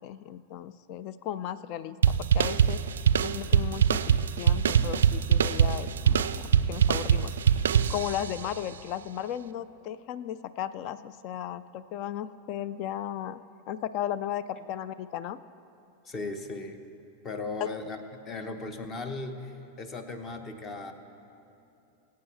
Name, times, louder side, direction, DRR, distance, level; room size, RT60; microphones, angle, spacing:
voice 1, 0.0-6.3 6.7-7.6 7.9-13.4 13.7-15.4, left 10 dB, 45° left, 15 dB, 0.4 m, -36 dB
sound 1, 2.0-8.4, right 8 dB, 65° right, 0.3 m, -23 dB
voice 2, 16.0-16.8 17.2-18.0 18.3-20.9, left 3 dB, 25° left, 8 dB, 1.0 m, -37 dB
24.0 x 8.2 x 3.1 m, 2.7 s
figure-of-eight pair, 90°, 0 cm